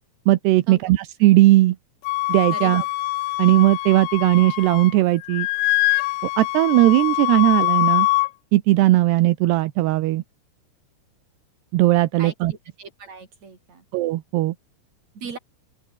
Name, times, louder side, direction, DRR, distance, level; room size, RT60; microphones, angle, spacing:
voice 1, 0.3-1.8 2.3-2.8 3.4-5.5 6.4-8.1 8.5-10.2 11.7-12.5 13.9-14.5, right 17 dB, 80° right, 3.0 m, -18 dB
Wind instrument woodwind instrument, 2.0-5.0 5.2-8.3, left 22 dB, 90° left, 2.1 m, -23 dB
voice 2, 2.5-2.9 12.2-13.8 15.1-15.4, right 4 dB, 40° right, 6.7 m, -38 dB
open air
omnidirectional pair, 4.9 m